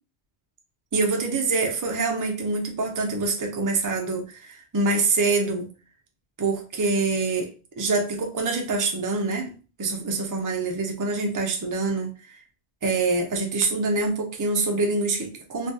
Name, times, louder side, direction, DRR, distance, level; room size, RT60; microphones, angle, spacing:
voice 1, 0.9-5.7 6.4-7.5 7.8-12.4 12.8-15.7, right 3 dB, 25° right, 2 dB, 0.4 m, -25 dB
3.3 x 2.2 x 2.6 m, 0.34 s
omnidirectional pair, 1.1 m